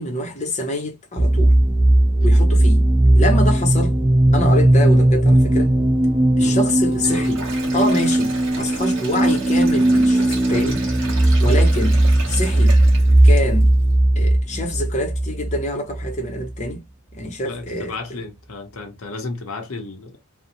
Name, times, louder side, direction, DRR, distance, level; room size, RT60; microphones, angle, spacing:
voice 1, 0.0-1.5 2.2-2.9 3.1-4.0 4.3-5.7 6.4-7.5 7.7-10.8 11.4-12.8 13.2-13.8 14.2-16.8 17.1-18.2, left 1 dB, 35° left, 0.6 m, -25 dB
sound 1, 1.2-16.7, right 1 dB, 15° right, 0.3 m, -17 dB
Sink (filling or washing), 6.9-13.7, right 3 dB, 60° right, 1.0 m, -34 dB
voice 2, 17.5-20.2, left 3 dB, 75° left, 0.7 m, -33 dB
2.5 x 2.0 x 2.8 m
head